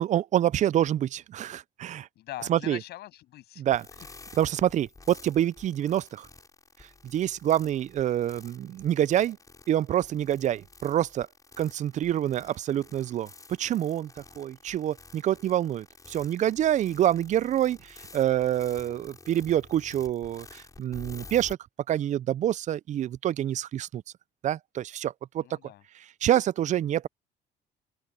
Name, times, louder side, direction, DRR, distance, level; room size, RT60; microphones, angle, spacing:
voice 1, 0.0-2.1 2.5-2.8 3.6-3.9 4.4-6.3 7.0-9.4 9.7-11.3 11.6-14.1 14.4-21.6 21.9-24.0 24.4-25.4 26.2-27.1, right 11 dB, 45° right, 0.4 m, -27 dB
voice 2, 2.2-3.6 4.3-4.4 25.4-25.8, left 15 dB, 75° left, 7.5 m, -42 dB
sound 1, 3.7-21.5, left 3 dB, 20° left, 6.7 m, -50 dB
open air
cardioid pair, 110°, 17 cm